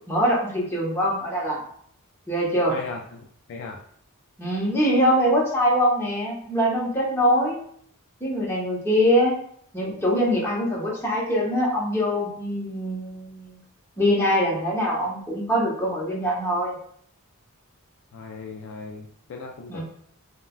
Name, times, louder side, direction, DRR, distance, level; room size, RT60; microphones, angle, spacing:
voice 1, 0.1-1.6 2.3-2.7 4.4-7.6 8.2-9.4 9.7-13.6 14.0-16.8 19.7-19.8, equal, 10° left, -6 dB, 0.8 m, -23 dB
voice 2, 2.7-3.2 3.5-3.8 18.1-19.8, left 4 dB, 60° left, 2 dB, 0.3 m, -37 dB
3.2 x 2.1 x 2.3 m, 0.62 s
head